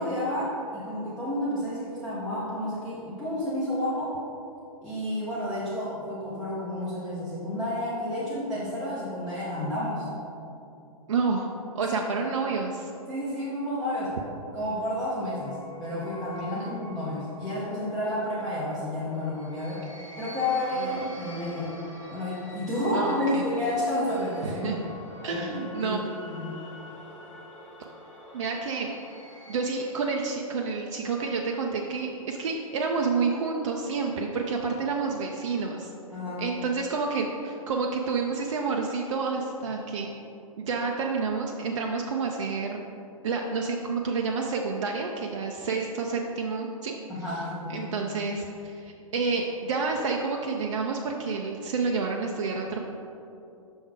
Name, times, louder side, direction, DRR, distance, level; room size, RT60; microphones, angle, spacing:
voice 1, 0.0-4.2 4.8-10.1 12.1-12.3 13.1-14.1 14.5-19.8 20.2-21.7 22.1-24.8 25.2-26.6 36.1-36.4 47.1-47.8, left 1 dB, ahead, -12 dB, 1.0 m, -30 dB
voice 2, 11.1-11.5 11.7-12.9 20.7-21.0 22.9-23.5 24.4-24.8 25.2-26.0 28.3-28.9 29.5-35.9 36.4-40.1 40.6-42.8 43.2-46.9 47.7-52.8, right 4 dB, 55° right, 1 dB, 0.5 m, -29 dB
sound 1, 13.7-30.6, left 1 dB, 60° left, 1.3 m, -46 dB
6.1 x 3.5 x 4.9 m, 2.7 s
figure-of-eight pair, 110°, 18 cm